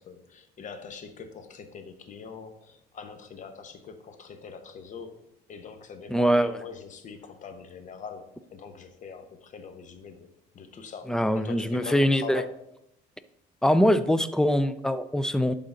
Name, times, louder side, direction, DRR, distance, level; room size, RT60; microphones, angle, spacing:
voice 1, 0.0-5.1 5.5-10.3 10.5-12.6, left 6 dB, 50° left, 7 dB, 1.0 m, -43 dB
voice 2, 6.1-6.6 11.1-12.4 13.6-15.5, equal, 5° left, 12 dB, 0.4 m, -23 dB
11.0 x 3.8 x 3.8 m, 0.80 s
cardioid pair, 110°, 17 cm